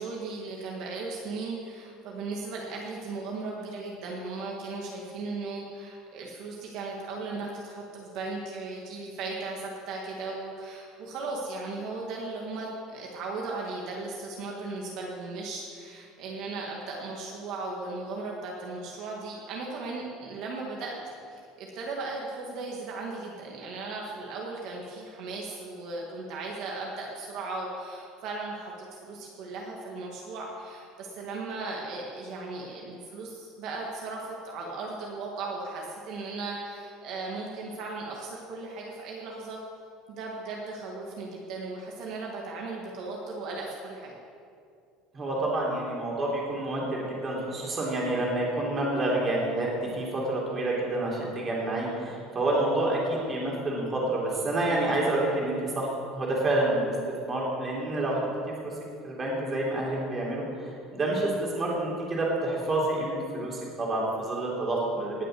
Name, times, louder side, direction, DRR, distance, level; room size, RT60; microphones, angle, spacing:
voice 1, 0.0-21.0 21.3-39.6 40.1-44.1, right 3 dB, 55° right, -1 dB, 2.0 m, -37 dB
voice 2, 45.1-49.7 49.9-56.9 57.2-58.3 58.6-58.7 59.0-65.2, right 2 dB, 25° right, -3 dB, 3.4 m, -28 dB
19.0 x 6.6 x 7.8 m, 2.4 s
cardioid pair, 165°, 0 cm